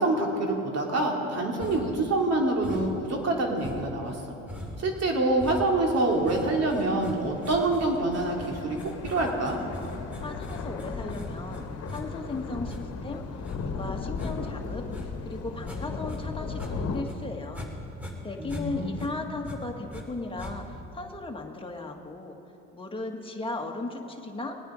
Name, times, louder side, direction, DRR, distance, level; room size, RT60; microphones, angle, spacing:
voice 1, 0.0-4.2 4.8-9.6 18.4-18.9, right 2 dB, 45° right, 0 dB, 2.9 m, -26 dB
sound 1, 1.6-2.0 2.6-3.1 3.6-16.2 16.5-17.7 18.0-20.0 20.4-20.9, left 1 dB, 5° right, 3.2 m, -41 dB
sound 2, 6.1-17.0, left 4 dB, 45° left, 1.5 m, -37 dB
voice 2, 10.2-13.2 13.5-17.7 18.2-22.4 22.7-24.6, left 3 dB, 15° left, 2 dB, 1.7 m, -36 dB
19.5 x 9.2 x 5.1 m, 3.0 s
supercardioid pair, 75°, 34 cm